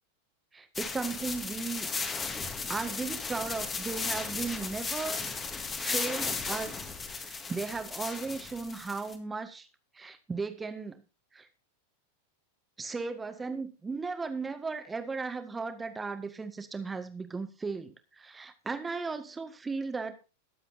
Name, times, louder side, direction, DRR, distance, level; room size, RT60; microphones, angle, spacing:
voice 1, 0.5-1.9 2.7-9.7 9.9-11.0 11.3-11.5 12.8-20.2, right 4 dB, 15° right, 8 dB, 1.7 m, -36 dB
sound 1, 0.7-9.1, left 4 dB, 20° left, 2.0 m, -35 dB
22.0 x 7.7 x 2.7 m, 0.31 s
figure-of-eight pair, 90°, 0 cm